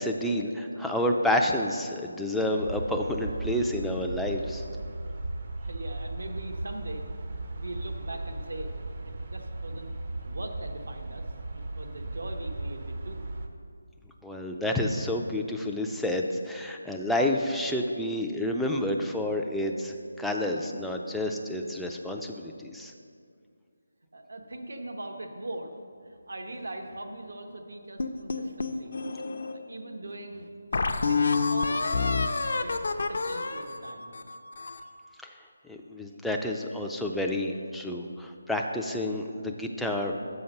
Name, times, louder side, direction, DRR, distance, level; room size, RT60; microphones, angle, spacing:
voice 1, 0.0-4.6 14.2-22.9 35.6-40.1, left 1 dB, ahead, 0 dB, 0.4 m, -29 dB
sound 1, 2.6-13.5, right 2 dB, 45° right, 0.7 m, -36 dB
voice 2, 5.6-7.1 7.6-8.8 9.0-9.9 10.2-11.2 11.5-13.2 24.1-25.7 26.0-29.0 29.5-30.5 30.8-32.2 32.5-34.1, right 1 dB, 70° right, 4 dB, 1.0 m, -41 dB
sound 2, 28.0-29.5 30.1-30.2 30.7-34.9, left 4 dB, 60° left, 0.5 m, -28 dB
7.0 x 5.3 x 6.5 m, 2.3 s
figure-of-eight pair, 165°, 0 cm